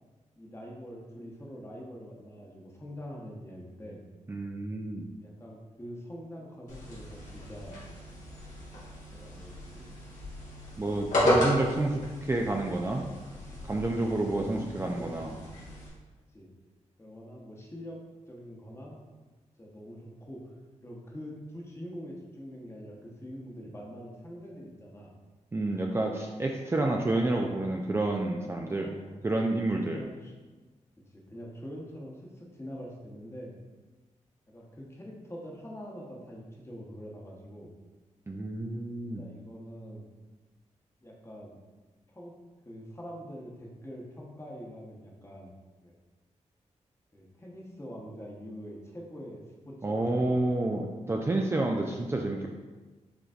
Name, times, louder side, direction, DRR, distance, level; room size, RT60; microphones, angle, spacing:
voice 1, 0.4-4.0 5.2-7.9 9.1-9.9 10.9-11.3 13.7-15.5 16.3-16.5 17.0-19.0 19.6-25.1 28.6-29.2 29.9-30.3 31.1-33.5 34.5-37.7 39.2-40.1 41.0-41.6 42.1-42.4 42.6-45.5 45.8-45.9 47.1-50.6, equal, 20° left, -2 dB, 1.0 m, -44 dB
voice 2, 4.3-5.1 10.8-13.1 13.6-15.3 25.5-28.9 29.2-30.0 38.3-39.3 49.8-52.5, right 2 dB, 20° right, 1 dB, 0.3 m, -29 dB
sound 1, 6.7-15.9, equal, 80° left, 1.3 m, -33 dB
5.0 x 3.2 x 2.4 m, 1.2 s
cardioid pair, 60°, 13 cm